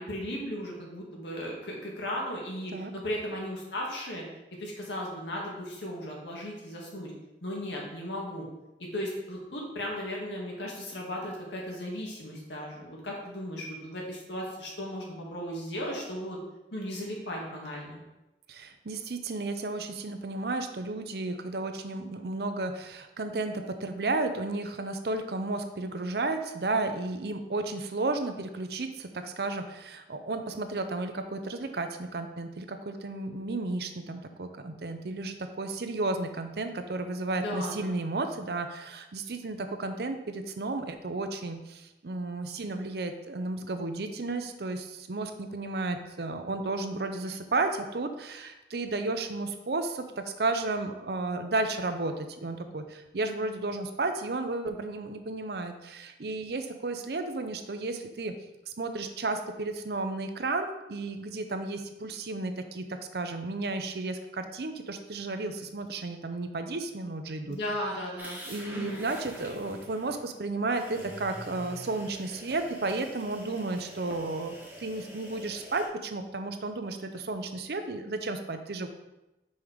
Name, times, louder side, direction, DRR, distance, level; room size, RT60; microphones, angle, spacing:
voice 1, 0.0-4.2 4.6-7.1 7.4-8.5 8.8-16.4 16.7-18.0 37.3-38.0 67.5-68.4 68.7-69.0, equal, 85° left, -2 dB, 1.8 m, -36 dB
voice 2, 18.5-58.3 58.7-67.6 68.5-78.9, right 2 dB, 60° right, 7 dB, 0.6 m, -33 dB
sound 1, 68.2-70.1 70.7-75.9, right 1 dB, 10° right, 1.1 m, -46 dB
5.5 x 4.6 x 5.0 m, 0.97 s
head